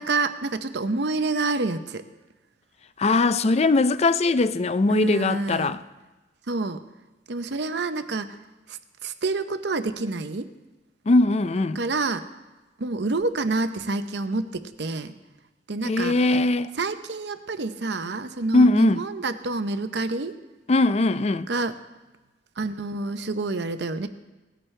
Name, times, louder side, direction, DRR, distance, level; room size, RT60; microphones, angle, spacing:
voice 1, 0.0-2.0 4.9-5.8 6.5-6.8 7.3-8.4 8.7-10.5 11.7-12.2 12.8-15.1 15.7-16.1 16.8-20.4 21.5-21.8 22.6-24.1, right 3 dB, 70° right, 0.8 m, -28 dB
voice 2, 3.0-5.8 11.1-11.8 15.9-16.7 18.5-19.0 20.7-21.5, left 2 dB, 35° left, 0.4 m, -20 dB
18.0 x 14.5 x 3.3 m
head